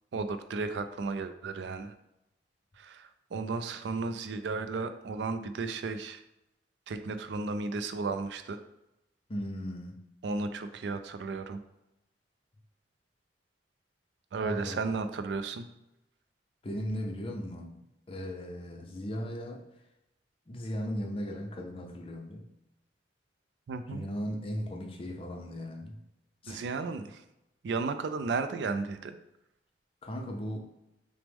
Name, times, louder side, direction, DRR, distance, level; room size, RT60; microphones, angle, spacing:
voice 1, 0.1-1.9 2.8-6.2 6.9-8.6 10.2-11.6 14.3-15.7 23.7-24.1 26.5-27.2 27.6-29.2, right 4 dB, 70° right, 10 dB, 0.3 m, -34 dB
voice 2, 9.3-10.0 14.4-14.8 16.6-17.8 18.1-19.6 20.5-22.5 23.9-26.0 26.4-26.6 30.0-30.6, equal, 30° left, 3 dB, 0.5 m, -37 dB
5.9 x 2.1 x 3.4 m, 0.90 s
head